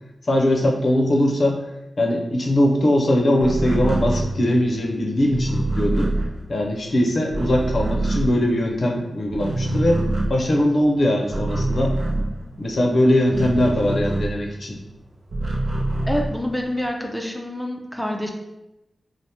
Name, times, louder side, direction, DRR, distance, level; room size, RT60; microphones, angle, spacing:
voice 1, 0.3-1.7 2.0-6.1 6.5-10.0 10.3-11.9 12.6-14.8, left 1 dB, 55° left, 0 dB, 0.5 m, -20 dB
sound 1, 3.4-9.0 9.2-14.7 15.0-16.9, right 2 dB, 70° right, 0.6 m, -25 dB
voice 2, 16.1-18.3, left 1 dB, ahead, 2 dB, 0.4 m, -27 dB
3.3 x 2.0 x 2.7 m, 0.94 s
wide cardioid pair, 85°, 0 cm